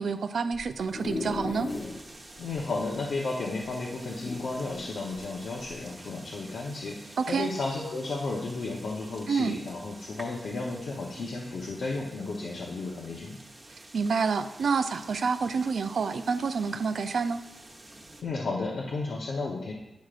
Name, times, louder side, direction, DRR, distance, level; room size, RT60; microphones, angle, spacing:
voice 1, 0.0-1.7 7.2-7.5 9.3-9.6 13.7-17.4, right 5 dB, 70° right, 9 dB, 0.4 m, -28 dB
sound 1, 0.5-2.1 2.5-2.6 2.8-2.9 4.0-5.0 5.6-5.8, left 3 dB, 45° left, 0.7 m, -36 dB
sound 2, 1.7-18.2, right 1 dB, 25° right, 1.1 m, -49 dB
voice 2, 2.4-13.4 18.2-19.7, left 3 dB, 75° left, -3 dB, 0.8 m, -33 dB
10.5 x 6.3 x 2.5 m, 0.99 s
wide cardioid pair, 150°, 0 cm